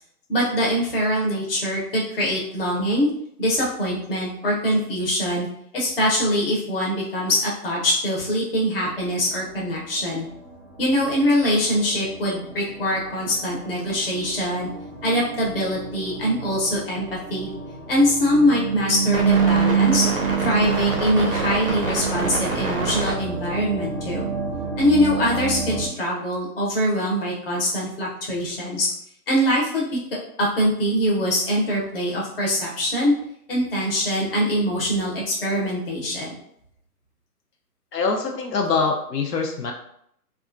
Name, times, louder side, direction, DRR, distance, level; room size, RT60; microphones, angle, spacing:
voice 1, 0.3-3.1 3.4-5.5 5.7-10.3 10.8-14.7 15.0-17.5 17.9-20.1 20.4-24.3 24.8-28.9 29.3-29.9 30.4-33.2 33.5-36.4, equal, 35° left, -4 dB, 0.8 m, -23 dB
sound 1, 8.8-25.9, right 5 dB, 40° right, 0.5 m, -27 dB
voice 2, 37.9-39.7, left 4 dB, 80° left, 2 dB, 0.7 m, -24 dB
2.8 x 2.4 x 2.5 m, 0.71 s
hypercardioid pair, 160°, 48 cm